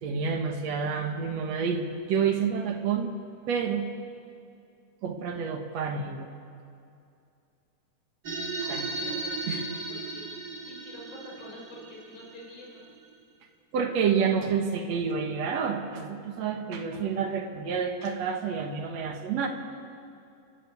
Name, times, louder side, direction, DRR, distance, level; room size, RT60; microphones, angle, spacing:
voice 1, 0.0-3.1 3.5-3.9 5.0-6.3 8.7-8.9 9.5-9.6 13.7-19.5, right 6 dB, 65° right, 5 dB, 2.6 m, -29 dB
sound 1, 8.2-13.1, right 3 dB, 40° right, 1.9 m, -36 dB
voice 2, 8.6-9.6 9.9-10.3 10.6-12.9, left 1 dB, 55° left, -3 dB, 5.1 m, -46 dB
29.0 x 12.0 x 8.3 m, 2.5 s
omnidirectional pair, 3.4 m